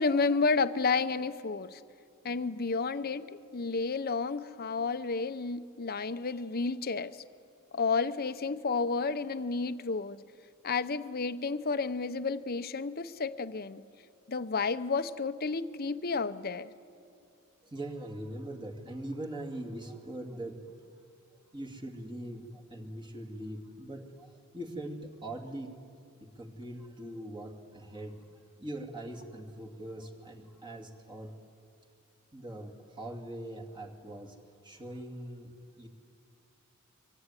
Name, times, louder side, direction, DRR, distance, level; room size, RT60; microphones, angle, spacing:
voice 1, 0.0-1.8 2.2-7.2 7.7-10.2 10.6-13.8 14.3-16.7, left 4 dB, 45° left, 12 dB, 0.8 m, -31 dB
voice 2, 17.6-21.0 21.5-25.8 26.2-28.2 28.6-31.3 32.3-34.4 34.6-35.9, right 1 dB, 20° right, 1 dB, 2.5 m, -42 dB
24.0 x 24.0 x 9.8 m, 2.4 s
head